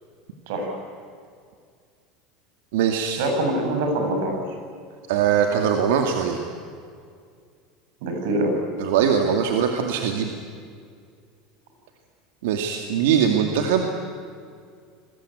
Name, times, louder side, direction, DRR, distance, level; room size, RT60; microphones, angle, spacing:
voice 1, 0.5-0.8 3.2-4.4 8.0-8.5, right 1 dB, 70° right, 3 dB, 7.8 m, -24 dB
voice 2, 2.7-3.2 5.1-6.4 8.8-10.3 12.4-13.8, right 8 dB, 85° right, 4 dB, 2.4 m, -21 dB
29.0 x 22.0 x 9.4 m, 2.2 s
supercardioid pair, 170°, 0 cm